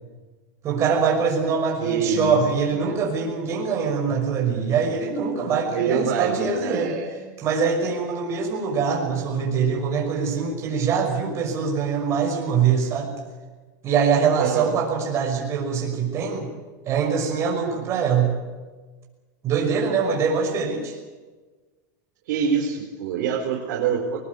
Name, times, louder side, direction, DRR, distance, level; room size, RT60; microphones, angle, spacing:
voice 1, 0.6-7.0 7.4-13.1 13.8-16.5 16.9-18.3 19.4-21.0, right 6 dB, 30° right, 0 dB, 6.1 m, -23 dB
voice 2, 1.8-2.4 2.7-3.0 5.7-7.2 14.4-14.7 22.3-24.2, right 6 dB, 65° right, -2 dB, 4.2 m, -25 dB
21.0 x 21.0 x 8.3 m, 1.3 s
supercardioid pair, 155°, 10 cm